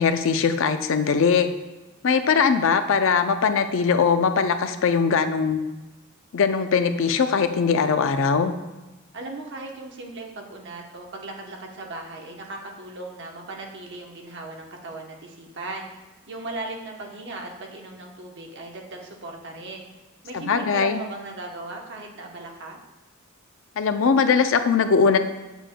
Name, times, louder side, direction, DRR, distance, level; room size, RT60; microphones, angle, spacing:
voice 1, 0.0-1.5 2.0-5.6 6.3-8.5 20.3-21.0 23.8-25.2, left 5 dB, 65° left, 9 dB, 0.5 m, -21 dB
voice 2, 9.1-15.9 16.3-19.9 20.2-22.8, right 2 dB, 60° right, 1 dB, 0.9 m, -37 dB
7.4 x 7.1 x 2.2 m, 1.1 s
head